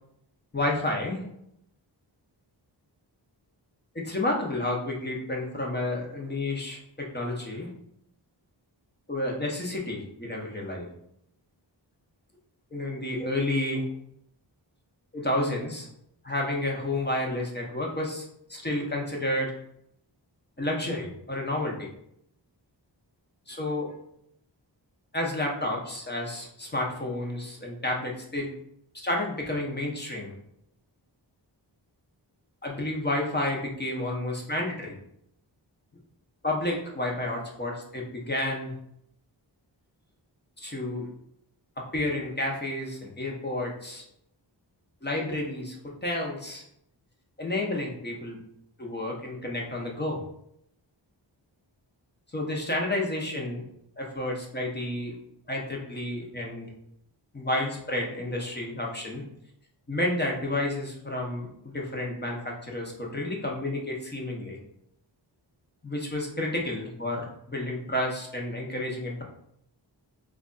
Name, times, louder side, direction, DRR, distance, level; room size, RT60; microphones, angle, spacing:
voice 1, 0.5-1.2 3.9-7.7 9.1-10.9 12.7-13.9 15.1-15.9 16.2-18.2 18.5-19.5 20.6-21.9 23.5-23.9 25.1-28.5 29.0-30.3 32.6-35.0 36.4-38.7 40.6-41.1 41.8-44.0 45.0-45.8 46.0-46.6 47.4-48.4 48.8-50.2 52.3-53.6 54.0-55.1 55.5-56.7 57.3-59.2 59.9-64.6 65.8-69.2, left 1 dB, 25° left, -1 dB, 0.8 m, -30 dB
3.2 x 2.4 x 3.8 m, 0.73 s
wide cardioid pair, 85°, 44 cm